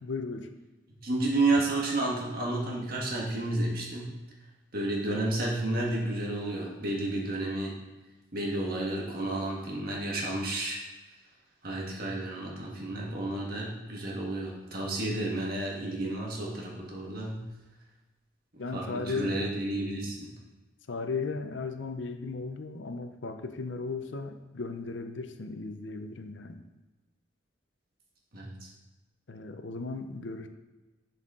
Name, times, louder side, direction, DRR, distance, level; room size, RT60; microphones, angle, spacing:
voice 1, 0.0-0.5 18.6-19.4 20.9-26.6 29.3-30.5, left 4 dB, 75° left, 7 dB, 0.6 m, -36 dB
voice 2, 1.0-4.1 4.7-7.7 8.3-10.8 11.6-17.4 18.5-20.3 28.3-28.7, right 2 dB, 50° right, -2 dB, 1.6 m, -31 dB
11.0 x 4.2 x 3.7 m, 1.1 s
head